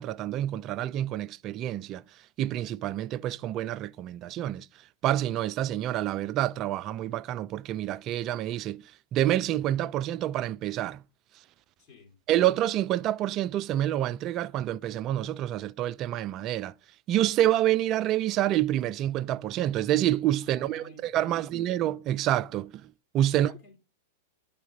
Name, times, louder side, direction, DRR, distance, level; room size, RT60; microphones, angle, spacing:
voice 1, 0.0-2.0 2.4-4.7 5.0-11.0 12.3-16.7 17.1-23.5, right 13 dB, 35° right, 0.3 m, -28 dB
voice 2, 11.8-12.2 20.4-21.5 23.3-23.8, left 3 dB, 40° left, 1.8 m, -53 dB
10.5 x 3.6 x 3.8 m
figure-of-eight pair, 100°, 0 cm